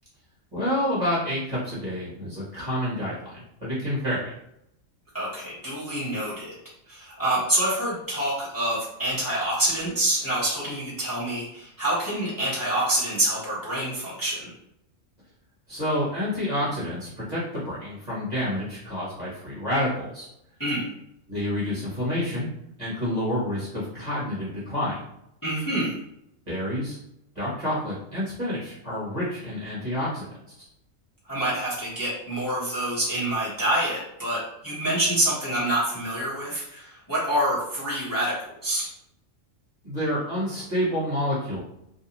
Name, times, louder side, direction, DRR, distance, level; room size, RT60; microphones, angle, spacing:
voice 1, 0.5-4.3 15.7-20.3 21.3-22.5 22.8-25.0 26.5-27.0 27.3-30.2 39.8-41.6, left 1 dB, 35° right, -8 dB, 1.0 m, -28 dB
voice 2, 5.1-6.5 6.9-14.5 20.6-20.9 25.4-26.0 31.3-38.4 38.6-38.9, right 1 dB, 15° left, -8 dB, 0.9 m, -27 dB
2.6 x 2.1 x 2.9 m, 0.80 s
omnidirectional pair, 1.3 m